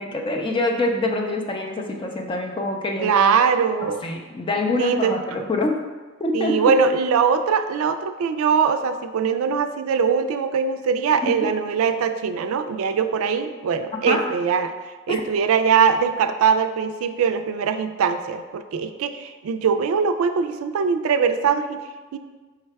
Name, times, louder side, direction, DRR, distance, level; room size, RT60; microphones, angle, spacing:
voice 1, 0.0-3.3 4.0-5.8 6.2-6.7 11.2-11.3 14.1-14.2 15.1-15.2, left 2 dB, 25° left, 2 dB, 0.4 m, -25 dB
voice 2, 3.0-4.0 4.8-5.2 6.3-14.7 15.1-21.8 22.1-22.2, right 6 dB, 85° right, 8 dB, 0.3 m, -21 dB
4.7 x 2.2 x 4.5 m, 1.3 s
head